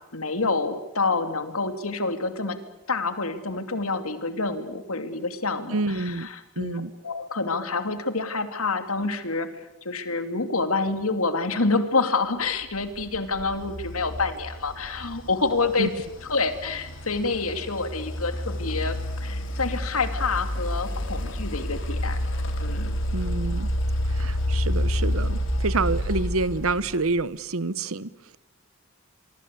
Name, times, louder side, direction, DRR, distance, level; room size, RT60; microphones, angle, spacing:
voice 1, 0.1-2.6 2.9-16.0 16.3-22.2 22.6-22.9, left 3 dB, 85° left, 2.8 m, -27 dB
voice 2, 5.7-6.3 6.6-6.9 15.8-15.9 23.1-23.7 24.1-28.4, right 3 dB, 80° right, 1.0 m, -28 dB
sound 1, 12.8-27.2, equal, 60° left, 3.5 m, -29 dB
25.0 x 25.0 x 8.4 m
head